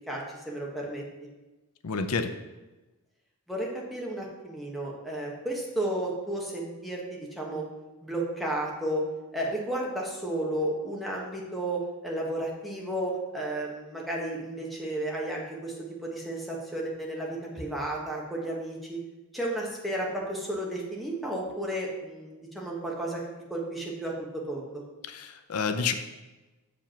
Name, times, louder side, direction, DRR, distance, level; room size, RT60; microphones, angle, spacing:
voice 1, 0.1-1.0 3.5-7.6 8.0-9.0 9.3-15.7 16.0-19.0 19.3-23.2 23.5-24.8, right 1 dB, ahead, -3 dB, 1.5 m, -33 dB
voice 2, 1.8-2.3 25.0-25.9, left 5 dB, 85° left, 9 dB, 0.6 m, -29 dB
7.2 x 5.2 x 5.8 m, 1.1 s
head